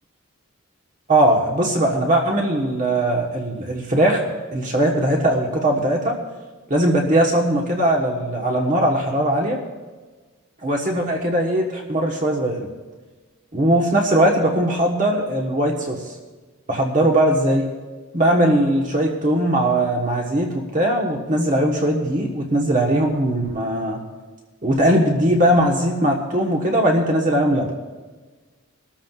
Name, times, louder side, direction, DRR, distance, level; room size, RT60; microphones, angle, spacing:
voice 1, 1.1-4.2 4.5-6.2 6.7-9.6 10.6-12.7 13.5-16.0 16.7-17.7 18.1-24.0 24.6-27.7, right 1 dB, 35° right, 0 dB, 1.3 m, -19 dB
22.5 x 13.5 x 2.4 m, 1.3 s
head